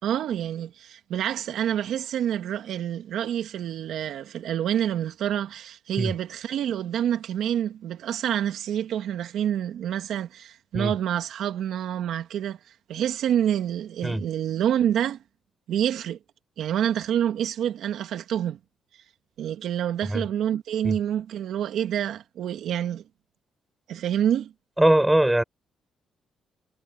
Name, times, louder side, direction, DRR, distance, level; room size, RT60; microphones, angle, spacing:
voice 1, 0.0-12.6 12.9-15.2 15.7-16.2 16.6-18.6 19.4-23.0 23.9-24.5, right 10 dB, 75° right, 1.9 m, -27 dB
voice 2, 24.8-25.4, right 1 dB, 10° right, 5.0 m, -21 dB
cardioid pair, 90°, 0 cm